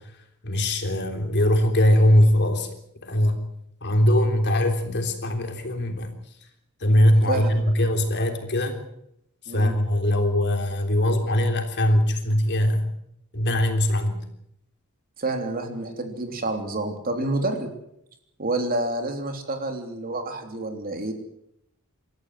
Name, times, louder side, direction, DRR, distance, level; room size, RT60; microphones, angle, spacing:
voice 1, 0.4-2.8 3.0-3.4 3.8-6.1 6.8-8.8 9.5-12.9 13.3-14.3, left 1 dB, 50° left, 5 dB, 3.5 m, -21 dB
voice 2, 15.2-17.7 18.4-21.1, right 2 dB, 40° right, 5 dB, 3.4 m, -28 dB
27.0 x 14.0 x 7.8 m, 0.77 s
head